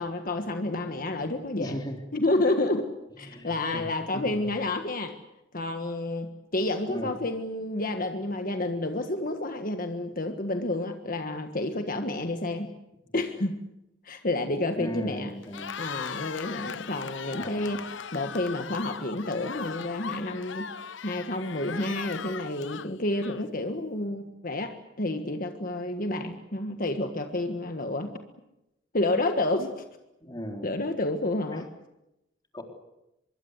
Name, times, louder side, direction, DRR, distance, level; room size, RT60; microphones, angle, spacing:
voice 1, 0.0-1.8 2.1-2.9 3.2-5.1 5.5-12.7 13.1-13.6 14.0-15.3 15.8-20.7 21.0-28.1 28.9-29.8 30.6-31.7, left 2 dB, 45° left, 6 dB, 1.6 m, -30 dB
voice 2, 1.6-2.0 3.2-4.5 6.9-7.1 14.7-15.7 17.4-17.7 30.2-30.7 31.5-31.6 32.5-32.6, equal, 20° left, 3 dB, 3.7 m, -37 dB
Cheering, 15.4-23.7, left 6 dB, 75° left, 0.9 m, -39 dB
25.0 x 22.5 x 8.1 m, 0.90 s
head